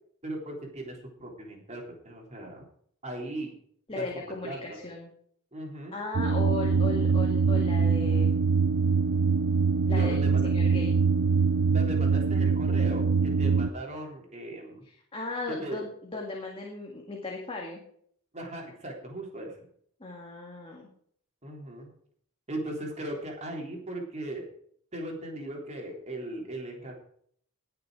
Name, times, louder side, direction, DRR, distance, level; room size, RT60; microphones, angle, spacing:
voice 1, 0.2-2.6 3.0-3.5 4.0-4.8 5.5-6.0 9.9-10.5 11.7-14.9 15.5-15.8 18.3-19.5 21.4-21.9 22.5-24.5 24.9-26.9, right 1 dB, 30° right, 0 dB, 3.6 m, -38 dB
voice 2, 3.9-5.1 5.9-8.3 9.9-11.0 14.8-17.8 20.0-20.9, left 3 dB, 25° left, -1 dB, 2.1 m, -37 dB
sound 1, 6.1-13.7, right 5 dB, 60° right, 0.7 m, -24 dB
19.5 x 6.8 x 4.9 m, 0.62 s
head